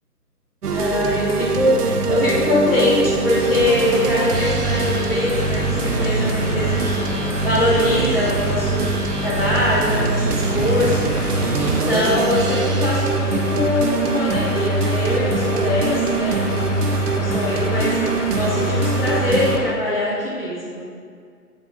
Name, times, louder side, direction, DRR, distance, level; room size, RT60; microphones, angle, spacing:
sound 1, 0.6-19.6, right 4 dB, 70° right, 0.7 m, -23 dB
voice 1, 0.7-7.0 7.4-8.8 9.2-11.1 11.6-16.7 17.1-18.0 18.3-20.8, left 1 dB, 35° left, -8 dB, 1.6 m, -22 dB
sound 2, 3.3-19.7, left 3 dB, 50° left, 0.5 m, -30 dB
7.1 x 3.6 x 5.1 m, 2.1 s
figure-of-eight pair, 160°, 48 cm